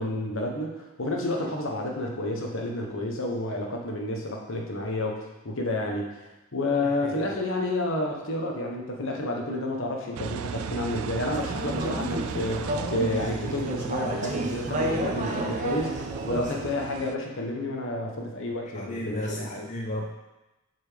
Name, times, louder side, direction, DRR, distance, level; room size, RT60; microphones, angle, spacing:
voice 1, 0.0-6.1 6.5-19.7, left 1 dB, 60° left, 1 dB, 1.2 m, -30 dB
Engine, 10.1-17.1, right 6 dB, 70° right, 0.4 m, -36 dB
Conversation / Chatter, 11.3-16.7, right 1 dB, 35° right, 0.9 m, -32 dB
voice 2, 18.8-20.1, left 1 dB, 30° left, -1 dB, 0.5 m, -33 dB
7.5 x 4.5 x 5.1 m, 1.0 s
head